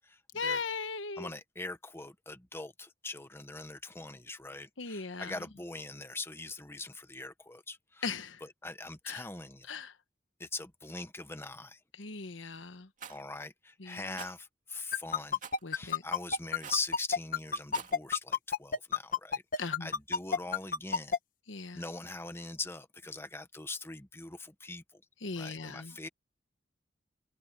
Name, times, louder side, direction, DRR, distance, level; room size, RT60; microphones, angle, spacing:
voice 1, 0.3-1.3 4.8-5.3 8.0-8.4 9.1-9.2 9.7-9.9 12.0-12.9 13.8-14.1 15.6-16.0 19.6-19.9 21.5-21.8 25.2-25.9, left 4 dB, 75° left, 1.2 m, -38 dB
voice 2, 1.2-8.1 8.4-9.8 10.4-11.8 13.1-15.4 15.7-21.1 21.7-24.8 25.4-26.1, left 3 dB, 15° left, 1.1 m, -42 dB
Rattle, 13.0-13.2 14.1-14.3 15.4-15.6 16.6-16.9 17.6-18.0, right 6 dB, 40° right, 2.5 m, -45 dB
sound 1, 14.9-21.2, left 6 dB, 45° left, 1.5 m, -29 dB
open air
head